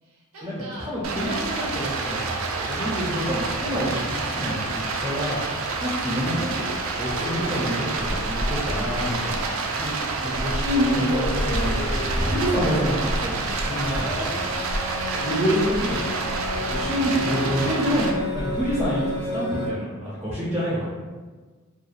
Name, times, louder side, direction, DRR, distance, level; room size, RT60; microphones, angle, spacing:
voice 1, 0.0-0.9 2.5-3.0 7.3-7.8 9.5-10.4 15.2-16.1 16.9-17.5, right 1 dB, 90° right, -3 dB, 0.7 m, -42 dB
voice 2, 0.9-2.2 2.7-5.4 5.8-9.4 9.8-9.9 10.2-14.5 15.2-16.1 16.7-20.9, equal, 10° right, -8 dB, 0.5 m, -27 dB
Stream, 1.0-18.1, right 3 dB, 65° right, 0.3 m, -28 dB
sound 1, 7.1-19.7, left 1 dB, 50° left, 0.4 m, -31 dB
2.3 x 2.2 x 3.1 m, 1.4 s
head